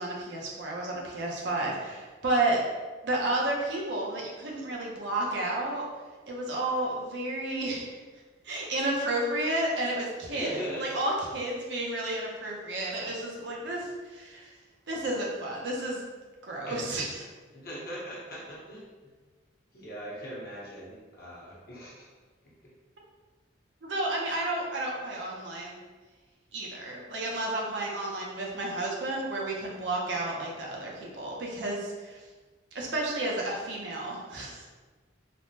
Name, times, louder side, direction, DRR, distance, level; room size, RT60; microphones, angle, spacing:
voice 1, 0.0-2.6 3.0-5.8 6.3-8.0 8.4-14.5 14.9-16.0 16.4-17.1 23.8-25.8 26.5-32.2 32.7-34.7, right 2 dB, 70° right, -2 dB, 0.6 m, -31 dB
voice 2, 10.3-10.9 16.7-17.0 17.5-19.1 19.7-22.1 22.4-22.5, equal, 55° left, -6 dB, 0.9 m, -40 dB
3.3 x 2.1 x 2.7 m, 1.3 s
head